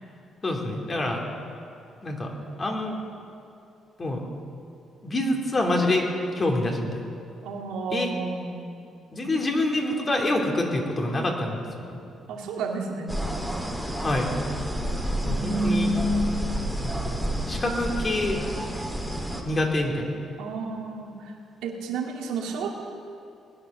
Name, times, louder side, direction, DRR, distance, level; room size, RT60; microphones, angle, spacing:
voice 1, 0.4-1.2 2.0-2.3 2.6-3.0 4.0-4.2 5.0-6.1 6.3-7.0 7.9-8.1 9.1-12.0 14.0-14.3 15.2-15.9 16.8-17.0 17.5-18.4 19.4-20.1, left 1 dB, 30° left, 1 dB, 2.9 m, -26 dB
voice 2, 7.4-8.5 12.3-13.1 15.2-16.4 20.4-21.3 21.6-22.8, right 2 dB, 90° right, 0 dB, 2.3 m, -29 dB
sound 1, 13.1-19.4, right 1 dB, ahead, 2.2 m, -30 dB
20.5 x 10.0 x 6.6 m, 2.6 s
cardioid pair, 90°, 0 cm